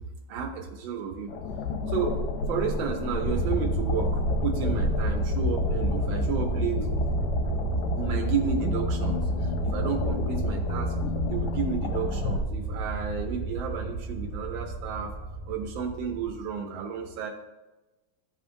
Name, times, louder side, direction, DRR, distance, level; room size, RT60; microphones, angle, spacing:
voice 1, 0.3-1.3 1.9-2.2 2.5-7.3 7.9-10.9 11.3-15.1 15.5-17.3, right 6 dB, 90° right, 2 dB, 1.4 m, -32 dB
sound 1, 1.3-12.4, left 3 dB, 70° left, 1.0 m, -31 dB
sound 2, 3.3-16.4, right 1 dB, 60° right, 1.2 m, -30 dB
11.0 x 3.7 x 2.6 m, 1.1 s
omnidirectional pair, 2.1 m